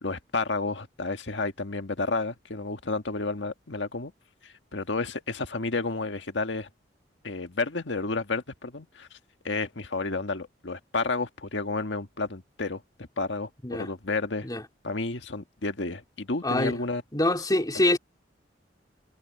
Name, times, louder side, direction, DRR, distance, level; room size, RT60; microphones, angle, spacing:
voice 1, 0.0-4.1 4.4-6.7 7.2-9.2 9.4-12.8 13.2-14.5 14.8-17.0, left 3 dB, 85° left, 1.7 m, -31 dB
voice 2, 17.1-18.0, left 1 dB, 20° left, 3.2 m, -24 dB
head